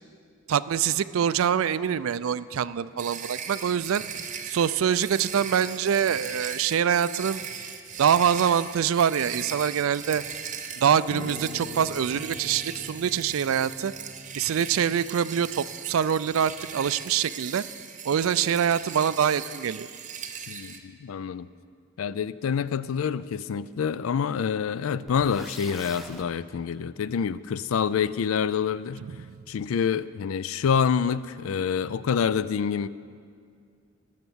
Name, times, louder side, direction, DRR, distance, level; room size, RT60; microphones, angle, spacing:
voice 1, 0.5-4.0 4.5-7.4 8.0-10.2 10.8-13.9 14.3-17.6 18.0-19.9 29.0-29.4, right 8 dB, 85° right, 17 dB, 0.4 m, -25 dB
sound 1, 3.0-20.8, right 7 dB, 35° right, 0.8 m, -39 dB
Piano, 11.1-16.4, left 2 dB, 40° left, 1.0 m, -44 dB
voice 2, 20.5-21.5 22.0-29.0 29.5-32.9, left 7 dB, 85° left, 17 dB, 0.4 m, -27 dB
sound 2, 25.1-26.3, right 1 dB, ahead, 0.8 m, -42 dB
19.0 x 6.7 x 6.3 m, 2.2 s
head